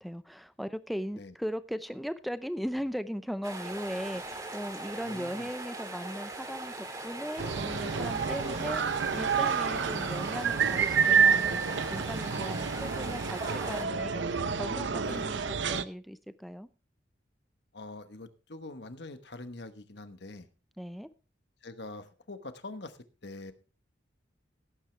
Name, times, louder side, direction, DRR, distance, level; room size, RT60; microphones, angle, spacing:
voice 1, 0.0-16.7 20.8-21.1, equal, ahead, 0.6 m, -38 dB
sound 1, 3.4-13.8, right 2 dB, 20° right, 2.1 m, -40 dB
voice 2, 5.0-5.5 9.6-10.2 14.2-15.3 17.7-20.5 21.6-23.5, left 2 dB, 65° left, 1.2 m, -45 dB
sound 2, 7.4-15.8, right 6 dB, 75° right, 0.7 m, -29 dB
17.0 x 9.1 x 3.3 m
head